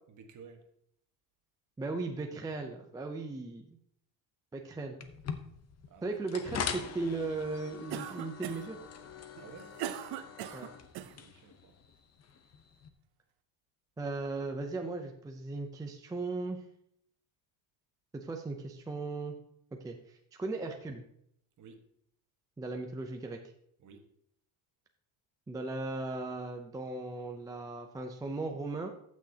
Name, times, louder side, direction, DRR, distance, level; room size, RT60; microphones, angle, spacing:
voice 1, 0.1-0.7 5.9-6.1 9.4-9.8 11.0-11.8 21.6-21.8 23.8-24.1, right 5 dB, 40° right, 5 dB, 1.3 m, -53 dB
voice 2, 1.8-3.8 4.5-5.0 6.0-8.8 10.5-10.7 14.0-16.6 18.1-19.3 19.8-21.0 22.6-23.4 25.5-28.9, right 3 dB, 10° right, 3 dB, 0.4 m, -37 dB
sound 1, 5.0-12.9, left 7 dB, 35° left, 0.8 m, -43 dB
Cough, 7.9-8.8 9.4-11.2, right 12 dB, 55° right, 0.7 m, -40 dB
14.5 x 6.3 x 2.8 m, 0.73 s
cardioid pair, 145°, 46 cm